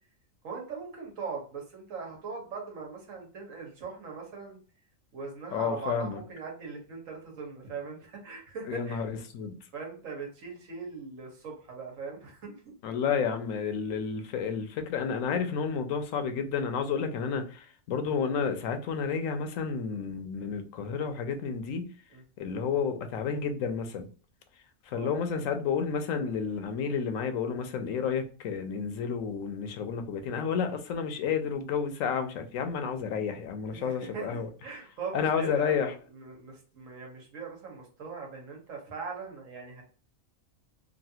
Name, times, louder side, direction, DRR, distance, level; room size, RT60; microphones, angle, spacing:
voice 1, 0.4-4.6 5.1-9.1 9.7-12.6 20.4-20.6 22.1-22.2 24.9-25.2 26.1-26.3 33.7-39.8, right 5 dB, 85° right, 1.5 m, -40 dB
voice 2, 5.5-6.2 8.7-9.5 12.8-21.9 22.4-24.1 24.9-34.5 35.1-35.9, left 6 dB, 90° left, 1.0 m, -31 dB
3.1 x 2.5 x 2.7 m
omnidirectional pair, 1.3 m